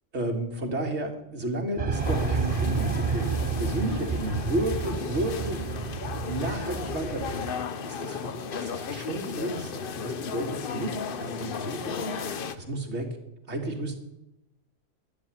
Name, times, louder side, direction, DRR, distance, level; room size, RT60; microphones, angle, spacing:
voice 1, 0.1-5.7 6.3-7.5 7.8-8.3 8.6-13.2 13.5-13.9, right 1 dB, 60° right, 2 dB, 2.4 m, -32 dB
sound 1, 1.8-7.5, right 5 dB, 40° right, 0.6 m, -30 dB
sound 2, 1.9-12.6, left 6 dB, 50° left, 0.9 m, -35 dB
12.0 x 7.4 x 9.9 m, 0.90 s
omnidirectional pair, 1.3 m